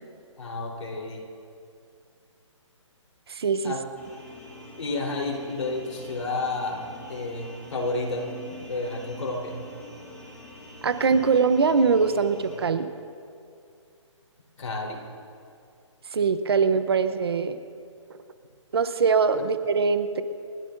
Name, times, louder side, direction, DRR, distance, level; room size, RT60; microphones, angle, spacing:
voice 1, 0.4-1.2 3.6-3.8 4.8-6.8 7.1-8.3 8.7-9.6 14.6-15.0, left 2 dB, 80° left, -1 dB, 3.8 m, -30 dB
voice 2, 3.3-3.7 10.8-12.9 16.1-17.6 18.7-20.2, right 5 dB, 50° right, 11 dB, 0.8 m, -22 dB
sound 1, 4.0-12.6, left 1 dB, 5° left, 1.9 m, -45 dB
30.0 x 12.5 x 2.6 m, 2.4 s
hypercardioid pair, 175°, 16 cm